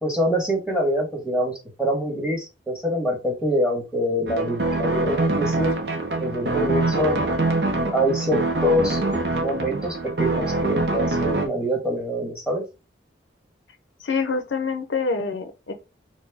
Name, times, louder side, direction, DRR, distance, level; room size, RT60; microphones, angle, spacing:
voice 1, 0.0-1.5 1.8-5.7 6.2-7.2 7.9-9.0 9.4-12.6, equal, 5° right, 1.3 m, -25 dB
sound 1, 4.3-11.5, right 2 dB, 65° right, 0.7 m, -24 dB
voice 2, 14.0-15.7, left 4 dB, 90° left, 0.6 m, -26 dB
4.1 x 2.2 x 3.4 m
head